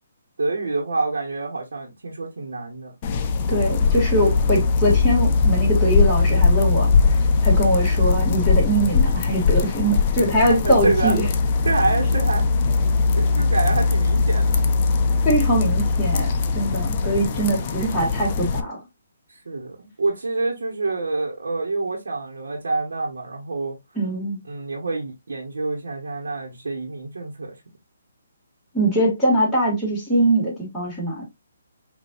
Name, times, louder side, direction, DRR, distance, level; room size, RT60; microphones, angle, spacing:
voice 1, 0.4-2.9 10.6-11.1 11.6-12.5 13.2-14.7 17.3-17.7 19.3-23.8 24.4-27.6, right 3 dB, 80° right, 1.3 m, -27 dB
sound 1, 3.0-18.6, left 4 dB, 30° left, 0.5 m, -20 dB
voice 2, 3.5-7.2 7.4-11.3 15.2-16.3 16.5-18.8 24.0-24.4 28.7-31.2, right 1 dB, ahead, 2.3 m, -22 dB
5.7 x 2.7 x 2.6 m
hypercardioid pair, 155°, 0 cm